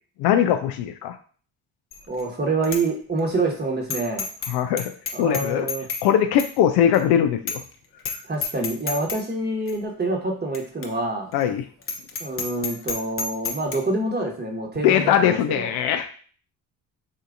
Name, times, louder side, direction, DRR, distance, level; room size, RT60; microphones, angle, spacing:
voice 1, 0.2-1.2 4.5-4.9 5.2-5.7 6.0-7.6 8.1-8.2 11.3-11.7 14.8-16.1, left 9 dB, 65° left, 8 dB, 0.5 m, -21 dB
Bicycle bell, 1.9-2.2 2.6-2.8 3.2-3.3 3.9-4.5 4.8-6.1 6.4-6.5 6.9-7.0 7.5-7.7 8.0-8.2 8.4-9.2 9.7-9.8 10.5-10.6 10.8-10.9 11.3-11.4 11.8-13.8, left 5 dB, 30° left, 0.7 m, -29 dB
voice 2, 2.1-4.3 5.1-5.9 8.3-11.3 12.2-15.7, right 2 dB, 25° right, 1 dB, 1.1 m, -26 dB
3.6 x 2.7 x 2.5 m, 0.43 s
hypercardioid pair, 50°, 41 cm